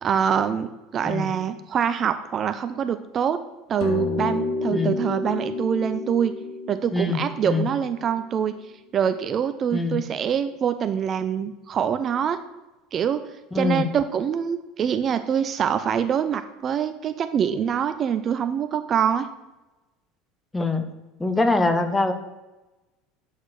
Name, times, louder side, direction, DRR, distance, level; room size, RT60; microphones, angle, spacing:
voice 1, 0.0-3.4 3.7-6.3 6.7-8.5 8.9-12.4 12.9-13.2 13.5-19.3, right 8 dB, 40° right, 9 dB, 0.5 m, -25 dB
sound 1, 3.8-8.5, left 3 dB, 60° left, 1.0 m, -30 dB
voice 2, 6.9-7.7 9.7-10.0 13.5-13.8 20.5-20.8 21.2-22.1, left 3 dB, 10° left, 7 dB, 1.1 m, -23 dB
8.3 x 4.9 x 6.4 m, 1.1 s
figure-of-eight pair, 70°, 0 cm